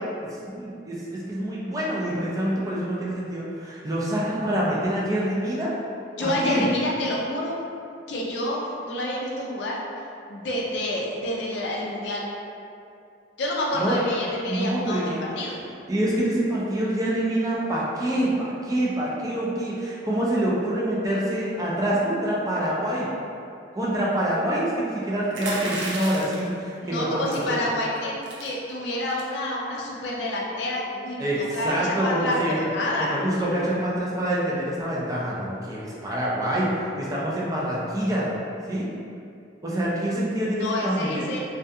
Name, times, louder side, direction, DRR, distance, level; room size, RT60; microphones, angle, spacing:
voice 1, 0.4-5.7 6.2-6.7 13.7-14.0 14.5-15.2 15.5-15.6 15.9-23.1 23.7-27.6 31.2-32.7 33.0-38.3 38.7-38.9 39.6-41.3, right 1 dB, 20° right, -6 dB, 0.4 m, -26 dB
voice 2, 6.1-7.6 8.1-9.8 10.3-12.3 13.4-15.0 15.4-15.6 26.8-33.1 40.6-41.4, left 1 dB, 70° left, -4 dB, 0.4 m, -28 dB
sound 1, 25.3-26.5 27.3-27.5 27.9-28.0 28.2-28.5 29.0-29.3, right 2 dB, 85° right, 0.5 m, -33 dB
2.4 x 2.3 x 2.6 m, 2.5 s
head